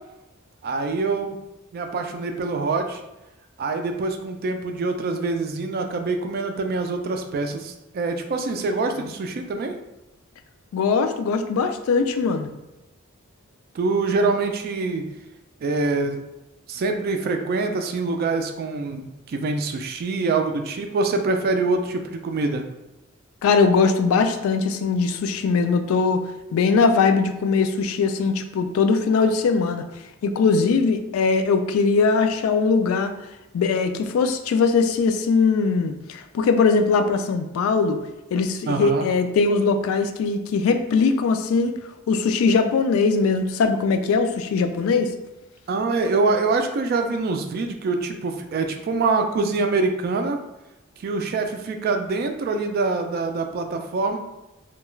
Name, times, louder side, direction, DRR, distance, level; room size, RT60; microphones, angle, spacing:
voice 1, 0.6-1.4 1.7-3.0 3.6-9.8 13.7-15.1 15.6-16.2 16.7-22.6 38.7-39.0 45.7-50.4 51.0-54.2, right 3 dB, 45° right, 5 dB, 0.3 m, -25 dB
voice 2, 10.7-12.5 23.4-26.2 26.5-29.8 30.2-33.1 33.5-38.0 38.3-41.7 42.1-45.1, left 4 dB, 75° left, 8 dB, 0.3 m, -20 dB
2.3 x 2.2 x 3.0 m, 0.98 s
head